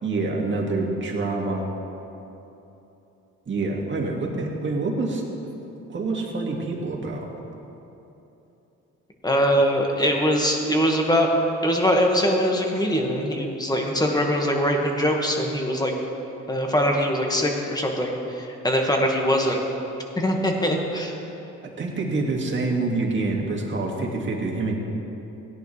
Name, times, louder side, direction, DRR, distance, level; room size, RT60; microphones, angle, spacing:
voice 1, 0.0-1.6 3.5-5.2 5.9-7.2 21.8-24.7, right 3 dB, 40° right, -1 dB, 2.1 m, -26 dB
voice 2, 9.2-11.3 11.6-15.9 16.5-19.6 20.2-21.1, equal, 15° left, 1 dB, 1.8 m, -22 dB
17.0 x 10.5 x 3.3 m, 3.0 s
cardioid pair, 90°, 30 cm